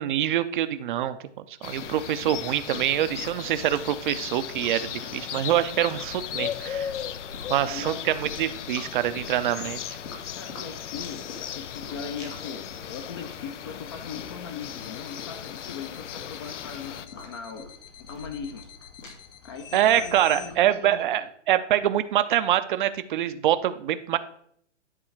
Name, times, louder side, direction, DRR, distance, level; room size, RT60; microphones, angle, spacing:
voice 1, 0.0-6.9 7.5-10.0 19.7-24.2, right 12 dB, 45° right, 12 dB, 0.5 m, -25 dB
sound 1, 1.6-17.1, left 9 dB, 75° left, 0.6 m, -37 dB
sound 2, 1.7-20.7, left 3 dB, 90° left, 2.5 m, -46 dB
voice 2, 7.5-8.1 10.4-17.7 18.1-18.7 19.4-21.3, left 6 dB, 20° left, 6 dB, 0.4 m, -39 dB
sound 3, 14.8-20.5, left 10 dB, 45° left, 1.0 m, -46 dB
9.9 x 3.8 x 4.4 m, 0.66 s
hypercardioid pair, 135°, 36 cm